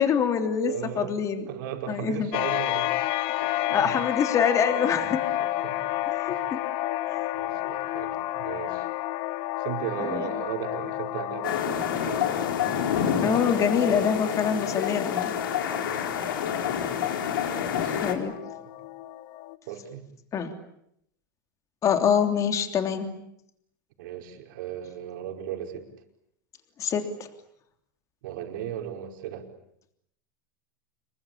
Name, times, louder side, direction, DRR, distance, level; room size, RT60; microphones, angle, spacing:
voice 1, 0.0-1.4 1.9-2.3 3.7-5.2 6.1-6.6 7.1-7.3 7.6-7.7 10.0-10.3 13.2-15.3 18.0-18.3 20.3-20.5 21.8-23.2 26.8-27.1, left 7 dB, 30° left, 7 dB, 3.2 m, -25 dB
voice 2, 0.6-1.1 1.5-3.9 5.2-6.0 6.3-6.5 7.3-8.9 9.6-12.2 15.9-16.2 17.7-18.5 18.8-18.9 19.7-20.1 24.0-25.9 28.2-29.4, right 10 dB, 70° right, 3 dB, 5.0 m, -37 dB
sound 1, 2.3-19.6, left 15 dB, 50° left, 1.2 m, -31 dB
sound 2, 11.4-18.1, left 8 dB, 85° left, 4.1 m, -28 dB
27.0 x 23.0 x 8.7 m, 0.75 s
supercardioid pair, 135°, 11 cm